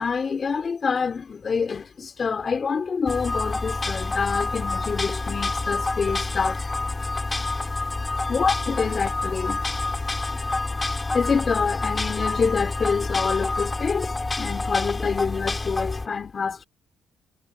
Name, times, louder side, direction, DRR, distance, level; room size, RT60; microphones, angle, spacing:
voice 1, 0.0-6.6 8.3-9.6 11.1-14.1 14.4-16.7, left 5 dB, 40° left, 4.3 m, -26 dB
sound 1, 3.1-16.1, left 3 dB, 20° left, 3.8 m, -28 dB
cardioid pair, 90°, 0 cm